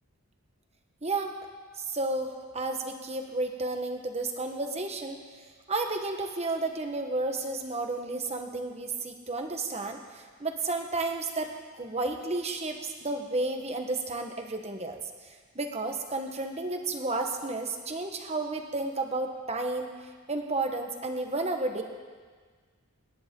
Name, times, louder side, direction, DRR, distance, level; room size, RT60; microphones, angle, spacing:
voice 1, 1.0-1.3 1.8-19.9 20.3-21.8, right 2 dB, 30° right, 4 dB, 1.3 m, -32 dB
26.0 x 11.0 x 3.9 m, 1.5 s
head